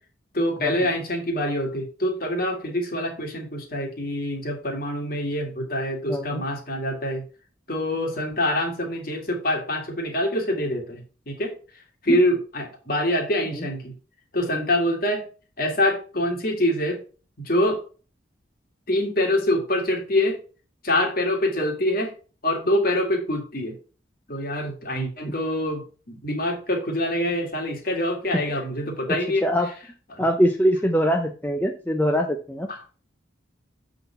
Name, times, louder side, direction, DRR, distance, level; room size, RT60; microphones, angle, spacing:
voice 1, 0.3-7.2 7.7-11.5 12.0-13.9 14.3-15.2 15.6-17.0 17.4-17.8 18.9-20.4 20.8-22.1 22.4-23.8 24.3-29.4 30.1-30.2, left 1 dB, 50° left, 2 dB, 2.0 m, -25 dB
voice 2, 6.1-6.4 12.1-12.2 13.5-13.7 28.3-28.4 29.1-29.7 30.2-32.7, equal, 10° left, 3 dB, 0.5 m, -23 dB
7.5 x 4.0 x 5.5 m, 0.38 s
head